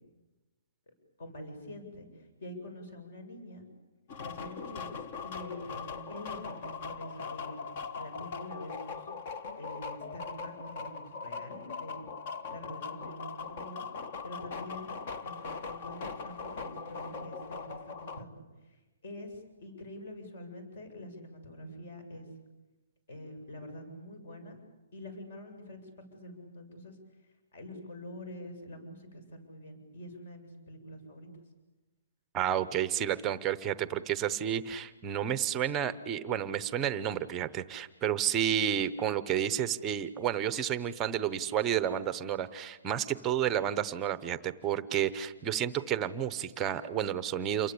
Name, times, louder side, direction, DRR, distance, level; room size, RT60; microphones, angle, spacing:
voice 1, 1.2-3.7 4.2-7.6 8.0-9.1 9.6-12.1 12.5-13.9 14.2-14.9 15.2-22.3 23.1-24.6 24.9-31.3, left 1 dB, 50° left, 7 dB, 7.7 m, -46 dB
sound 1, 4.1-18.2, left 5 dB, 35° left, 1.3 m, -40 dB
voice 2, 32.3-47.7, right 10 dB, 15° right, 13 dB, 0.8 m, -31 dB
28.5 x 23.0 x 8.6 m, 1.1 s
hypercardioid pair, 175°, 0 cm